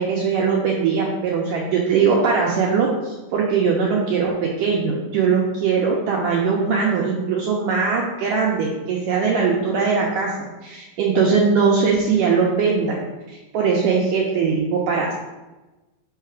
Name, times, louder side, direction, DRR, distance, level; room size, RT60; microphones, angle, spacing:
voice 1, 0.0-10.3 10.6-13.0 13.3-15.1, right 5 dB, 75° right, -2 dB, 2.0 m, -20 dB
5.7 x 5.7 x 4.6 m, 1.1 s
omnidirectional pair, 4.6 m